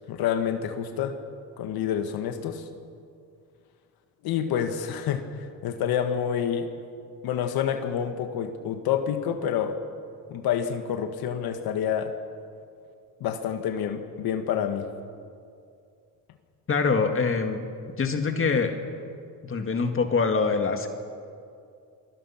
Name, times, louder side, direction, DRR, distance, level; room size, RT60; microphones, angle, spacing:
voice 1, 0.1-1.2 1.6-2.7 4.2-6.7 7.2-9.8 10.3-12.1 13.2-14.9, left 8 dB, 75° left, 6 dB, 1.7 m, -28 dB
voice 2, 16.7-17.7 18.0-18.8 19.4-20.9, left 4 dB, 35° left, 5 dB, 2.1 m, -24 dB
28.0 x 22.0 x 5.9 m, 2.4 s
cardioid pair, 125°, 37 cm